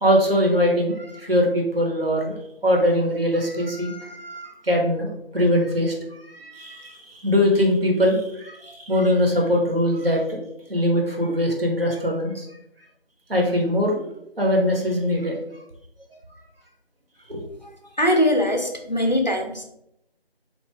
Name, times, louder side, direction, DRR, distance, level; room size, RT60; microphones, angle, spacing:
voice 1, 0.0-2.4 2.6-10.4 10.7-12.5 13.3-14.1 14.4-15.4 17.3-17.4, equal, 65° right, 0 dB, 1.0 m, -22 dB
voice 2, 18.0-19.6, equal, 45° left, 2 dB, 0.4 m, -21 dB
3.0 x 2.5 x 3.2 m, 0.80 s
figure-of-eight pair, 170°, 31 cm